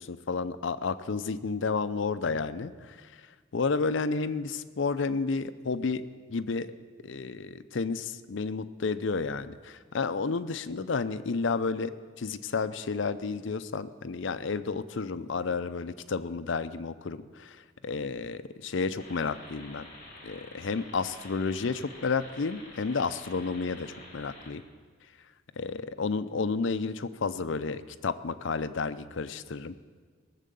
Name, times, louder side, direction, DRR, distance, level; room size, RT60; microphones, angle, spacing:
voice 1, 0.0-6.0 6.3-6.7 7.0-19.9 20.2-24.6 25.6-29.7, left 4 dB, 65° left, 13 dB, 0.5 m, -31 dB
sound 1, 19.0-24.5, left 2 dB, 40° left, 3.5 m, -49 dB
18.5 x 7.4 x 6.9 m, 1.5 s
head